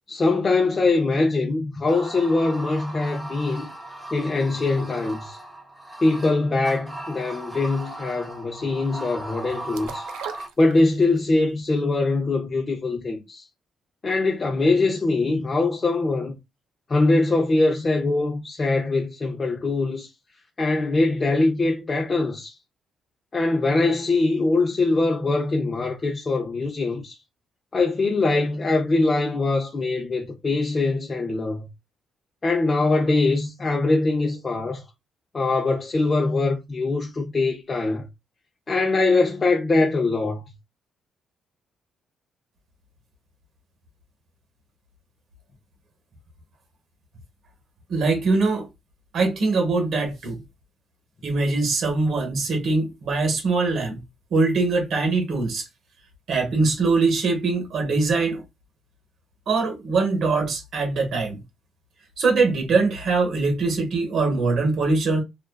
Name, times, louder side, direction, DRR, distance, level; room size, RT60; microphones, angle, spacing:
voice 1, 0.1-3.7 4.1-5.4 6.0-10.1 10.6-13.4 14.0-16.3 16.9-20.1 20.6-22.5 23.3-27.2 27.7-31.7 32.4-34.8 35.3-38.0 38.7-40.4, left 3 dB, 35° left, 0.5 m, -22 dB
sound 1, 1.9-10.5, right 1 dB, 5° right, 0.8 m, -38 dB
sound 2, 9.7-11.3 11.6-11.7, right 8 dB, 90° right, 0.3 m, -37 dB
voice 2, 47.9-48.7 49.1-50.4 51.2-54.0 54.3-55.6 56.3-58.4 59.5-61.4 62.2-65.2, right 3 dB, 65° right, 0.9 m, -22 dB
2.4 x 2.3 x 2.2 m
cardioid pair, 90°, 0 cm